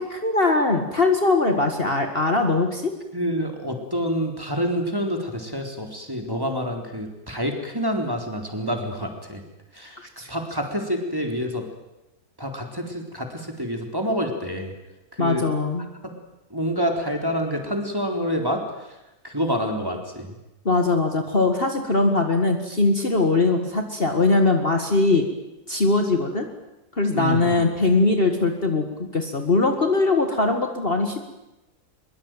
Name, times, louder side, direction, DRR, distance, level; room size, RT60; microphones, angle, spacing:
voice 1, 0.0-2.9 10.0-10.3 15.2-15.9 20.7-25.3 25.7-26.5 26.9-31.2, left 3 dB, 35° left, 5 dB, 2.2 m, -21 dB
voice 2, 3.1-9.4 9.7-11.6 12.4-14.7 15.1-15.5 16.0-16.1 16.5-19.0 19.2-20.4 27.1-27.6, equal, 15° right, 3 dB, 4.0 m, -27 dB
23.0 x 22.5 x 9.2 m, 0.99 s
omnidirectional pair, 1.6 m